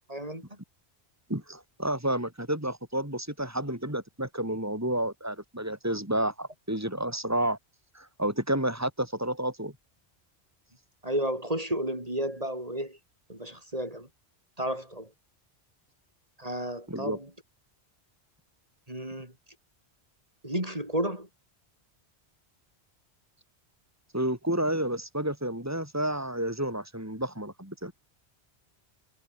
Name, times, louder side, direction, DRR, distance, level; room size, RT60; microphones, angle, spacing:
voice 1, 0.1-0.4 11.0-13.0 13.3-14.1 14.6-15.1 16.4-17.3 18.9-19.3 20.4-21.3, right 1 dB, 35° right, 5.9 m, -32 dB
voice 2, 1.3-7.6 7.9-9.7 16.9-17.2 24.1-27.9, right 1 dB, 15° right, 5.5 m, -30 dB
omnidirectional pair, 1.1 m